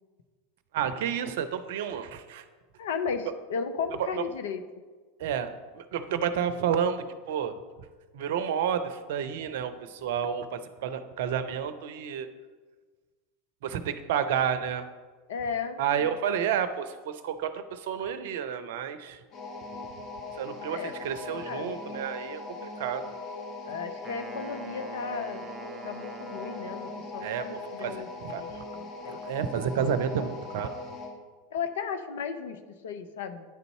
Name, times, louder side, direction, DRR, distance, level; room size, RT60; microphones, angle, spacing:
voice 1, 0.7-2.4 4.0-4.2 5.2-7.5 8.1-12.3 13.6-14.8 15.8-19.2 20.4-23.0 27.2-27.4 27.8-28.4 29.1-30.8, right 8 dB, 65° right, 11 dB, 0.6 m, -30 dB
voice 2, 2.8-4.6 15.3-16.1 20.6-20.9 21.5-21.8 23.6-25.5 25.8-28.1 28.4-29.2 31.5-33.4, left 6 dB, 70° left, 9 dB, 0.6 m, -35 dB
sound 1, 19.3-31.2, left 3 dB, 40° left, 1.4 m, -40 dB
Wind instrument woodwind instrument, 24.0-27.5, right 5 dB, 20° right, 0.7 m, -45 dB
9.5 x 4.0 x 5.5 m, 1.4 s
figure-of-eight pair, 85°, 0 cm